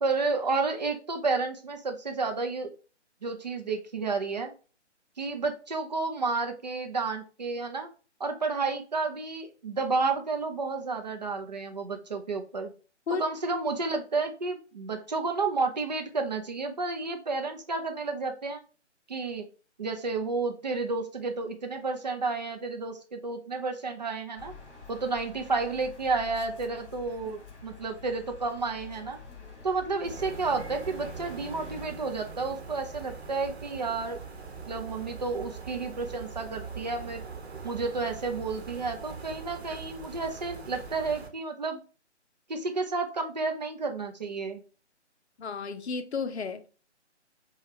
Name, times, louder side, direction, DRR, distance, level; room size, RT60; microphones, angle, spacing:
voice 1, 0.0-2.7 3.2-4.5 5.2-7.9 8.2-12.7 13.1-18.6 19.1-19.5 19.8-24.5 24.9-29.2 29.6-34.2 34.7-37.2 37.6-41.8 42.5-44.6, right 3 dB, 40° right, 0.5 m, -31 dB
sound 1, 24.4-31.9, left 4 dB, 45° left, 2.0 m, -48 dB
sound 2, 30.0-41.3, right 5 dB, 60° right, 1.0 m, -42 dB
voice 2, 45.4-46.7, left 5 dB, 65° left, 0.6 m, -32 dB
5.0 x 2.3 x 3.0 m
figure-of-eight pair, 145°, 36 cm